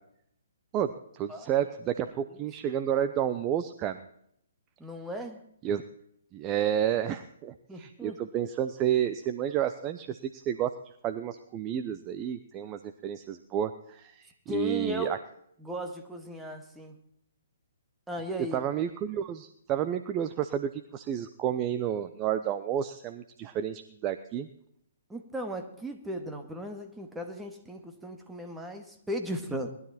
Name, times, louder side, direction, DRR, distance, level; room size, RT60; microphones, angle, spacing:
voice 1, 0.7-4.0 5.6-5.8 6.3-10.7 11.0-15.2 18.5-24.5, right 10 dB, 25° right, 10 dB, 0.8 m, -31 dB
voice 2, 4.8-5.4 7.7-8.2 14.5-15.1 15.6-17.0 18.1-18.6 25.1-29.7, equal, 5° right, 4 dB, 1.9 m, -36 dB
20.0 x 12.5 x 4.3 m, 0.72 s
figure-of-eight pair, 135°, 0 cm